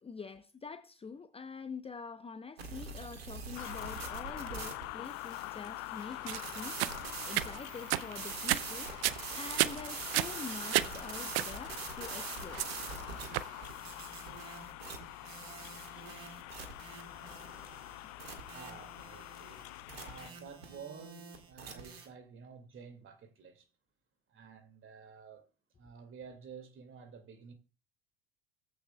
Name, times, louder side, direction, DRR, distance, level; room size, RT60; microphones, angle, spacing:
voice 1, 0.0-8.9 9.3-12.6, left 5 dB, 20° left, 0.7 m, -46 dB
sound 1, 2.6-22.1, right 5 dB, 85° right, 1.7 m, -45 dB
sound 2, 3.6-20.3, left 21 dB, 55° left, 0.4 m, -45 dB
sound 3, 6.3-13.6, right 17 dB, 70° right, 0.6 m, -34 dB
voice 2, 18.5-23.7 24.3-25.5 25.8-27.5, right 6 dB, 45° right, 2.2 m, -51 dB
16.5 x 8.5 x 2.2 m
hypercardioid pair, 65°, 30 cm